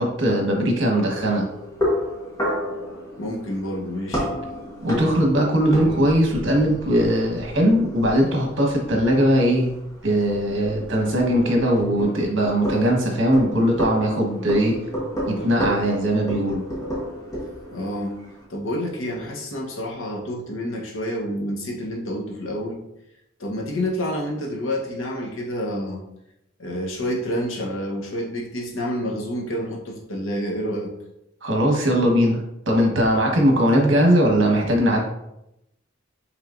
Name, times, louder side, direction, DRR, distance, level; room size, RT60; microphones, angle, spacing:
voice 1, 0.0-1.4 4.8-9.7 10.0-14.8 15.3-16.6 31.4-35.0, equal, 70° right, 0 dB, 1.1 m, -20 dB
sound 1, 0.9-18.4, equal, 15° left, 1.2 m, -31 dB
voice 2, 3.2-4.3 17.7-18.2 18.5-22.8 23.4-26.0 26.6-30.9, equal, 85° left, -1 dB, 1.0 m, -28 dB
5.8 x 3.2 x 2.5 m, 0.83 s
head